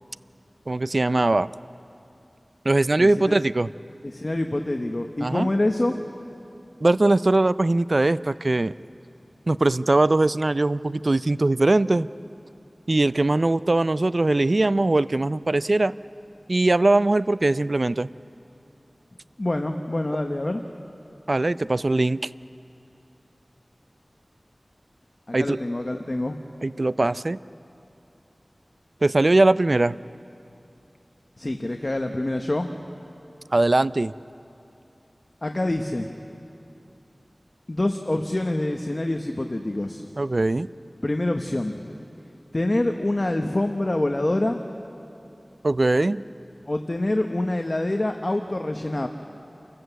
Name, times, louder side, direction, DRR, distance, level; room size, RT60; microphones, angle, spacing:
voice 1, 0.7-1.5 2.6-3.7 5.2-5.5 6.8-8.7 9.5-12.1 12.9-15.9 16.5-18.1 21.3-22.3 25.3-25.6 26.6-27.4 29.0-30.0 33.5-34.1 40.2-40.7 45.6-46.2, right 2 dB, 55° right, 16 dB, 0.4 m, -21 dB
voice 2, 3.0-3.3 4.0-6.0 19.4-20.6 25.3-26.3 31.4-32.7 35.4-36.1 37.7-40.1 41.0-42.0 42.5-44.6 46.7-49.1, left 1 dB, 45° left, 4 dB, 1.0 m, -26 dB
28.0 x 14.5 x 8.1 m, 2.7 s
wide cardioid pair, 55°, 0 cm